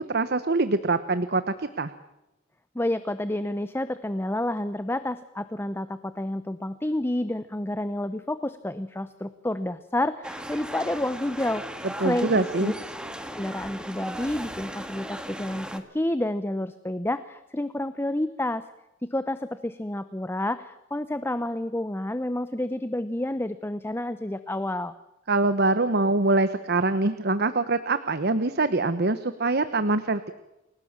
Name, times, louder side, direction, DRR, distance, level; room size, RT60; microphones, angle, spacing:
voice 1, 0.0-1.9 12.0-12.7 25.3-30.3, right 2 dB, 55° right, 11 dB, 1.1 m, -24 dB
voice 2, 2.7-12.7 13.3-18.6 19.0-24.9, left 1 dB, 10° left, 13 dB, 0.8 m, -29 dB
sound 1, 10.2-15.8, right 1 dB, 5° right, 2.0 m, -37 dB
29.0 x 18.0 x 7.4 m, 0.95 s
head